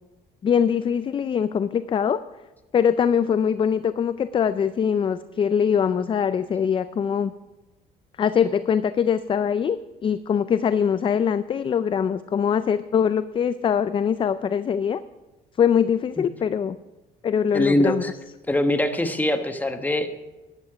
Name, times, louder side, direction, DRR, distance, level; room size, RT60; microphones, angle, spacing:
voice 1, 0.4-2.2 2.7-7.3 8.2-9.8 10.0-15.0 15.6-16.8 17.2-18.0, left 7 dB, 30° left, 13 dB, 0.4 m, -22 dB
voice 2, 17.5-18.1 18.5-20.2, left 1 dB, 10° left, 6 dB, 1.2 m, -23 dB
13.5 x 10.5 x 5.0 m, 1.1 s
cardioid pair, 110°, 17 cm